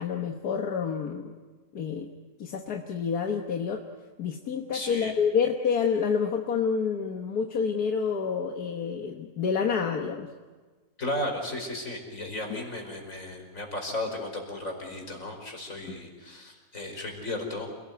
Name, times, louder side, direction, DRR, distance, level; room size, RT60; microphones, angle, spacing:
voice 1, 0.0-1.3 1.7-2.1 2.4-3.8 4.2-10.3, left 6 dB, 85° left, 3 dB, 1.8 m, -28 dB
voice 2, 4.7-5.1 11.0-17.7, left 1 dB, 60° left, 2 dB, 5.2 m, -35 dB
28.0 x 18.5 x 9.3 m, 1.4 s
omnidirectional pair, 1.6 m